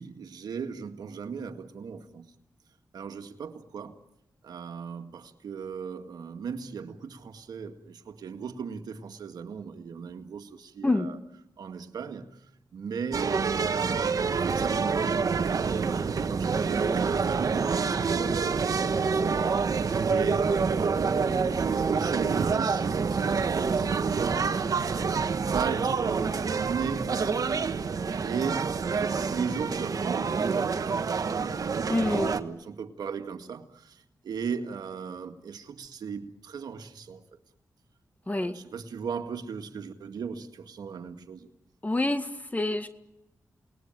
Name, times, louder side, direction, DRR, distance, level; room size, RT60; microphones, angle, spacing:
voice 1, 0.0-2.3 2.9-4.0 4.4-11.2 11.6-12.3 12.7-14.0 14.4-15.4 15.7-19.3 20.0-24.7 25.2-27.6 28.2-37.2 38.3-41.5, right 6 dB, 85° right, 1.9 m, -37 dB
sound 1, 13.1-32.4, right 5 dB, 60° right, 1.4 m, -27 dB
voice 2, 31.9-32.3 38.3-38.5 41.8-42.9, left 2 dB, 25° left, 1.9 m, -27 dB
29.0 x 20.0 x 9.1 m
cardioid pair, 65°, 7 cm